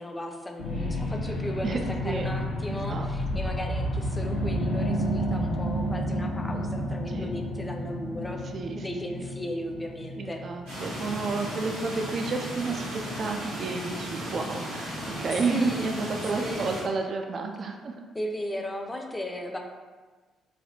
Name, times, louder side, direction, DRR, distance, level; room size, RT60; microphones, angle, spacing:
voice 1, 0.0-1.8 2.0-8.4 8.7-10.4 15.3-15.9 16.4-16.7 18.1-19.6, left 1 dB, 15° left, 2 dB, 0.5 m, -36 dB
sound 1, 0.6-13.2 13.7-13.8, equal, 70° left, 0.5 m, -31 dB
voice 2, 2.7-3.4 7.1-7.3 8.5-8.9 10.2-17.9, right 4 dB, 50° right, 4 dB, 0.3 m, -31 dB
sound 2, 10.7-16.8, equal, 85° right, 1.2 m, -35 dB
3.2 x 2.3 x 2.6 m, 1.4 s
figure-of-eight pair, 45°, 0 cm